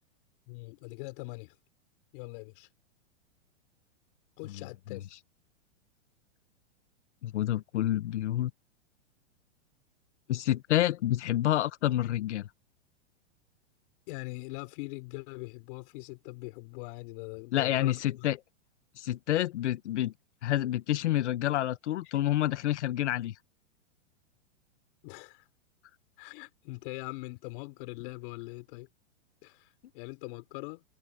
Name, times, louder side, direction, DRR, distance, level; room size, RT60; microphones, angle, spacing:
voice 1, 0.5-1.5 2.1-2.7 4.4-5.1 14.1-18.3 25.0-25.5 26.2-28.9 29.4-30.8, left 25 dB, 45° left, 4.3 m, -42 dB
voice 2, 7.2-8.5 10.3-12.5 17.5-18.4 19.0-20.1 20.4-23.3, left 13 dB, 65° left, 1.3 m, -28 dB
hypercardioid pair, 145°, 37 cm